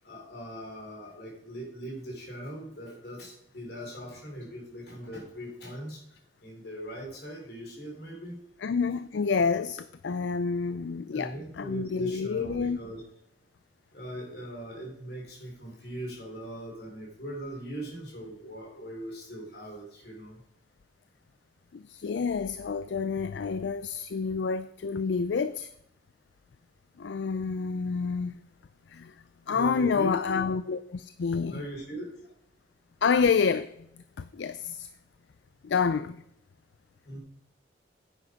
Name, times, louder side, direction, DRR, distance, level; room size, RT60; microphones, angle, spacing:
voice 1, 0.0-8.4 11.1-13.0 13.9-20.4 29.5-30.4 31.5-32.1 37.0-37.2, right 1 dB, 55° left, 4.0 m, -40 dB
voice 2, 8.6-12.8 21.7-25.7 27.0-28.4 28.9-29.1 29.5-31.7 33.0-34.9 35.6-36.2, left 5 dB, 75° left, 0.4 m, -28 dB
9.9 x 8.2 x 5.1 m
head